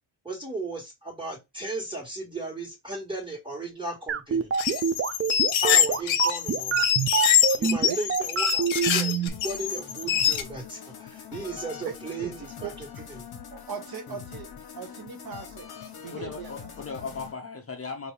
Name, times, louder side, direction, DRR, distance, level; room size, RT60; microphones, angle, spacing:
voice 1, 0.2-4.5 5.6-6.9 7.5-12.9 13.2-13.3, right 2 dB, 10° right, 1.6 m, -36 dB
sound 1, 4.1-9.3, right 7 dB, 30° right, 0.4 m, -25 dB
sound 2, 4.5-10.4, left 9 dB, 80° left, 0.7 m, -24 dB
sound 3, 9.3-17.3, left 7 dB, 55° left, 1.1 m, -43 dB
voice 2, 11.8-12.7 13.5-14.5 14.7-15.7 16.0-16.7, right 7 dB, 50° right, 0.7 m, -39 dB
voice 3, 16.1-18.1, left 4 dB, 30° left, 0.7 m, -37 dB
4.6 x 2.6 x 3.3 m
cardioid pair, 140°, 46 cm